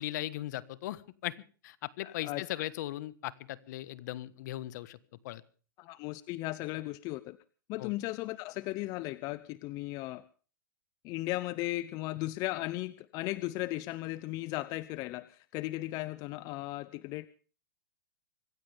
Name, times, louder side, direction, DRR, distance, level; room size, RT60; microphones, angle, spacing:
voice 1, 0.0-1.3 1.6-5.0 5.2-5.4 7.8-7.9, left 15 dB, 55° left, 17 dB, 1.4 m, -38 dB
voice 2, 2.0-2.7 5.8-7.4 7.7-10.2 11.0-17.3, left 18 dB, 35° left, 16 dB, 0.7 m, -36 dB
25.0 x 15.5 x 3.5 m, 0.39 s
supercardioid pair, 150°, 11 cm